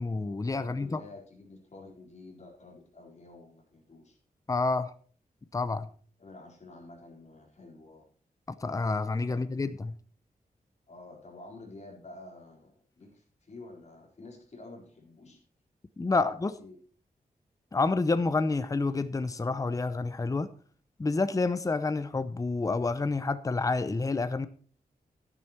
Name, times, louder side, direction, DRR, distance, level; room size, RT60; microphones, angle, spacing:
voice 1, 0.0-1.0 4.5-4.9 5.5-5.9 8.6-9.9 16.0-16.5 17.7-20.5 21.0-24.5, left 3 dB, 20° left, 12 dB, 0.7 m, -28 dB
voice 2, 0.6-4.2 6.2-8.0 9.3-9.5 10.9-15.4 16.1-16.8, left 2 dB, 45° left, 0 dB, 4.2 m, -50 dB
12.0 x 10.0 x 4.4 m, 0.43 s
wide cardioid pair, 145°, 16 cm